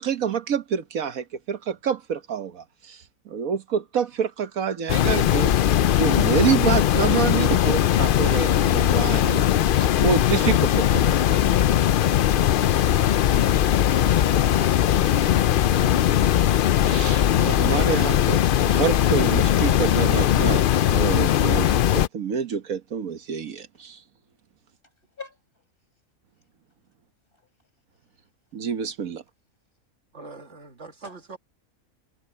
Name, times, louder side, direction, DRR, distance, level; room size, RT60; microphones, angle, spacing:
voice 1, 0.0-5.5 5.8-9.4 9.8-10.5 10.9-11.2 16.8-21.7 21.9-24.0 28.5-29.2, right 7 dB, 75° right, 1.5 m, -27 dB
sound 1, 4.9-22.1, left 11 dB, 75° left, 0.4 m, -20 dB
voice 2, 24.8-25.7 27.3-27.5 31.0-31.2, left 3 dB, 40° left, 6.0 m, -50 dB
voice 3, 30.1-31.4, right 3 dB, 55° right, 1.9 m, -42 dB
omnidirectional pair, 1.5 m